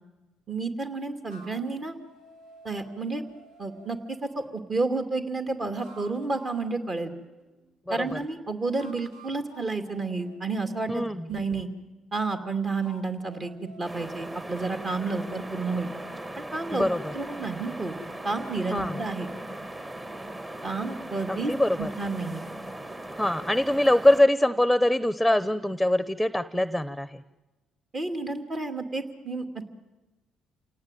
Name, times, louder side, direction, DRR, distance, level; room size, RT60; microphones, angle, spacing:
voice 1, 0.5-2.0 2.6-3.2 3.6-7.1 7.9-11.7 12.1-15.9 16.4-16.9 17.1-18.0 18.2-19.3 20.6-21.5 21.8-22.4 27.9-29.7, right 3 dB, 40° right, 7 dB, 2.6 m, -31 dB
sound 1, 1.3-4.6 5.6-7.7 8.7-11.9 12.7-16.3, right 2 dB, 75° right, 3.1 m, -53 dB
voice 2, 7.9-8.2 10.9-11.2 16.7-17.1 18.7-19.0 21.3-21.9 23.2-27.2, left 1 dB, ahead, 15 dB, 0.8 m, -23 dB
sound 2, 13.8-24.2, right 1 dB, 25° right, 2.1 m, -39 dB
28.0 x 18.0 x 9.1 m, 1.2 s
hypercardioid pair, 50°, 0 cm